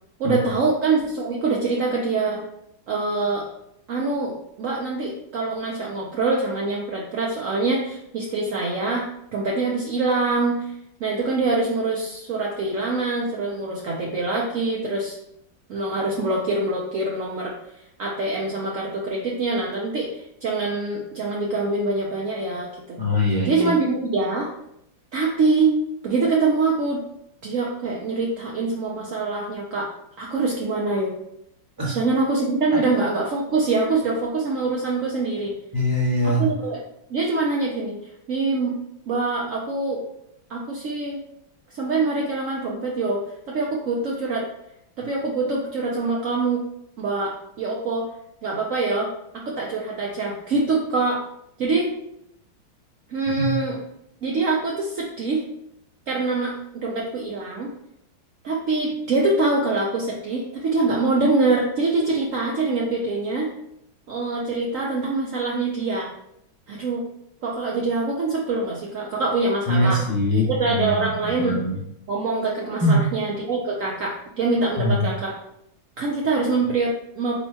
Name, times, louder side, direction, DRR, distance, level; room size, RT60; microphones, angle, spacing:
voice 1, 0.2-2.4 2.9-3.4 3.9-9.1 9.3-10.7 11.0-15.1 15.7-17.5 18.0-23.0 23.4-24.5 25.1-25.7 26.0-27.0 27.4-29.9 30.2-31.1 31.9-35.5 36.2-36.8 37.1-38.0 38.3-38.7 39.1-40.0 40.5-41.2 41.7-43.2 43.5-44.5 45.0-46.6 47.0-48.0 48.4-49.1 49.5-51.2 51.6-51.9 53.1-53.8 54.2-55.4 56.1-57.7 58.4-63.5 64.1-66.1 66.7-67.0 67.4-70.0 70.5-71.6 72.1-75.3 76.0-77.3, right 3 dB, 70° right, -2 dB, 0.7 m, -24 dB
voice 2, 23.0-23.7 31.8-31.9 32.7-32.8 35.7-36.5 53.4-53.5 69.7-71.8 72.8-73.1 74.8-75.1, left 1 dB, 15° right, -5 dB, 1.1 m, -22 dB
4.4 x 4.3 x 2.8 m, 0.78 s
omnidirectional pair, 2.2 m